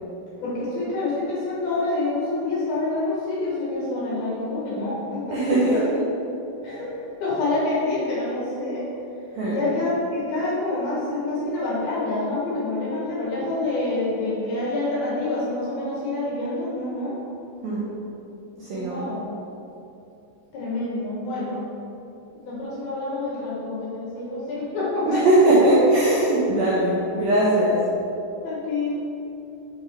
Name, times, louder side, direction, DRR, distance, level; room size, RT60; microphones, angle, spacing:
voice 1, 0.4-5.3 5.5-5.8 6.6-6.9 7.2-8.8 9.5-17.2 18.7-19.3 20.5-21.6 22.3-25.2 28.4-28.9, left 2 dB, 70° left, -6 dB, 2.6 m, -27 dB
voice 2, 5.3-5.8 9.3-9.6 17.6-17.9 18.6-19.1 25.1-27.9, right 1 dB, 75° right, -7 dB, 2.1 m, -20 dB
6.7 x 3.8 x 4.6 m, 2.8 s
omnidirectional pair, 5.1 m